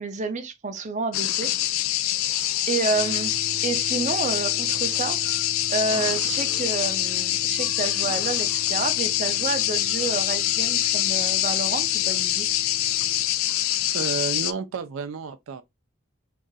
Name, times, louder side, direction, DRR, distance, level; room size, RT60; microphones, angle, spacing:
voice 1, 0.0-1.5 2.7-5.2 5.7-12.5, right 4 dB, 35° right, 0.5 m, -29 dB
sound 1, 1.1-14.5, left 13 dB, 90° left, 0.3 m, -25 dB
sound 2, 2.9-13.2, right 1 dB, 25° left, 1.0 m, -44 dB
voice 2, 13.9-15.6, right 5 dB, 85° right, 0.4 m, -31 dB
2.7 x 2.5 x 3.9 m
head